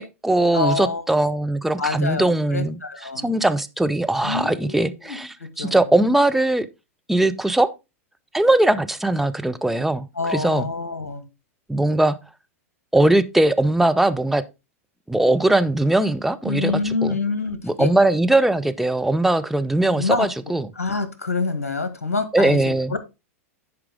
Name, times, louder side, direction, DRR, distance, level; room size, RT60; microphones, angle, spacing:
voice 1, 0.0-2.8 3.2-6.7 7.1-7.7 8.3-10.7 11.7-12.2 12.9-14.4 15.1-17.2 17.6-20.7 22.3-22.9, right 2 dB, 5° right, 0.7 m, -20 dB
voice 2, 0.5-1.0 1.8-3.3 4.2-5.8 10.1-11.2 16.4-17.9 19.9-20.3 20.7-22.6 22.9-23.0, left 4 dB, 75° left, 1.6 m, -26 dB
10.5 x 4.8 x 3.7 m
figure-of-eight pair, 95°, 8 cm